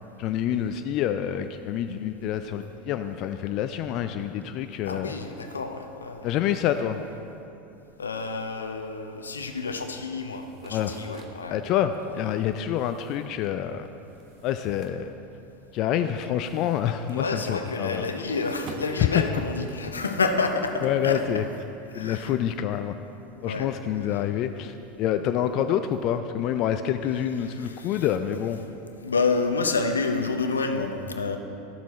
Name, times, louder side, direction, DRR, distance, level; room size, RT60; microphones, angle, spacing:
voice 1, 0.2-5.1 6.2-7.0 10.7-10.9 11.5-13.9 14.4-15.1 15.7-18.0 20.8-21.4 21.9-22.9 23.4-28.6, left 10 dB, 50° left, 8 dB, 0.4 m, -27 dB
voice 2, 4.8-6.3 8.0-11.6 17.1-21.2 21.9-22.3 23.4-23.7 24.1-24.2 27.4-28.1 28.9-31.4, left 4 dB, 90° left, 6 dB, 0.7 m, -29 dB
sound 1, 10.3-15.8 16.1-20.0, right 4 dB, 45° right, 1.0 m, -50 dB
12.5 x 7.3 x 4.1 m, 2.8 s
hypercardioid pair, 85°, 0 cm